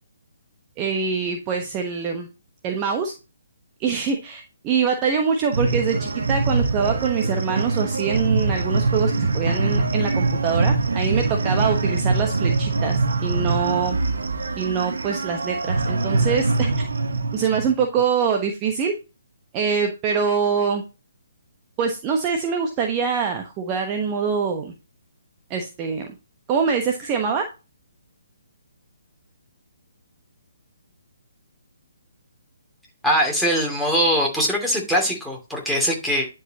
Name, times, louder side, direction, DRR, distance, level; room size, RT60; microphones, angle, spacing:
voice 1, 0.8-2.3 2.6-3.1 3.8-14.0 14.5-16.7 17.3-18.9 19.5-20.8 21.8-24.7 25.5-26.1 26.5-27.4, right 6 dB, 25° right, 3 dB, 1.1 m, -24 dB
sound 1, 5.5-17.7, right 3 dB, 70° right, 1.2 m, -23 dB
voice 2, 33.0-36.3, equal, ahead, -1 dB, 2.5 m, -21 dB
11.0 x 5.0 x 2.9 m, 0.30 s
figure-of-eight pair, 140°, 0 cm